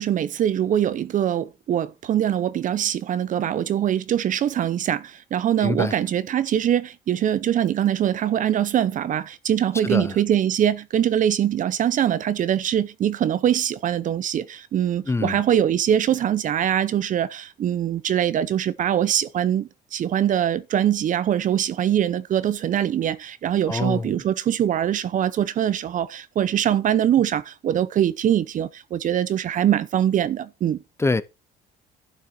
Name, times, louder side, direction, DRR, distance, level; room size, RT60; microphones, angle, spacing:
voice 1, 0.0-30.8, right 10 dB, 50° right, 0.8 m, -23 dB
voice 2, 5.6-6.0 9.8-10.2 15.1-15.4 23.7-24.2 31.0-31.2, left 3 dB, 15° left, 0.6 m, -25 dB
11.5 x 6.1 x 4.5 m
cardioid pair, 110°, 17 cm